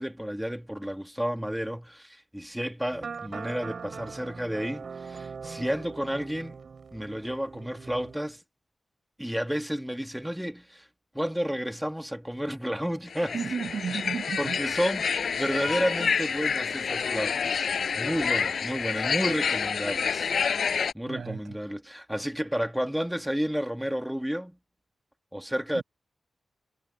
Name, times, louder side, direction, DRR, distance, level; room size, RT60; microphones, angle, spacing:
voice 1, 0.0-6.6 6.9-8.4 9.2-10.9 11.1-13.3 14.4-17.7 17.9-20.3 20.9-24.6 25.3-25.8, equal, 5° right, 1.6 m, -31 dB
sound 1, 2.9-8.2, right 5 dB, 60° right, 7.0 m, -41 dB
sound 2, 13.1-20.9, left 6 dB, 75° left, 4.9 m, -28 dB
voice 2, 13.3-14.6 21.0-21.6 25.7-25.8, right 6 dB, 80° right, 5.8 m, -33 dB
wide cardioid pair, 125°, 0 cm